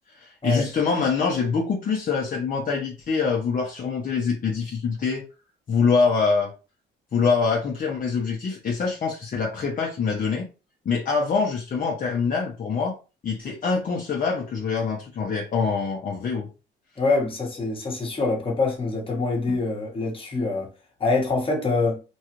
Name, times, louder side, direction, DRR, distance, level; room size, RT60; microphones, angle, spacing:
voice 1, 0.1-5.2 5.7-6.5 7.1-10.5 10.9-13.0 13.2-16.5 19.5-19.6, left 5 dB, 45° left, 0.7 m, -24 dB
voice 2, 17.0-20.7 21.0-22.0, left 3 dB, 25° left, 1.2 m, -25 dB
3.1 x 2.3 x 2.9 m
cardioid pair, 90°, 20 cm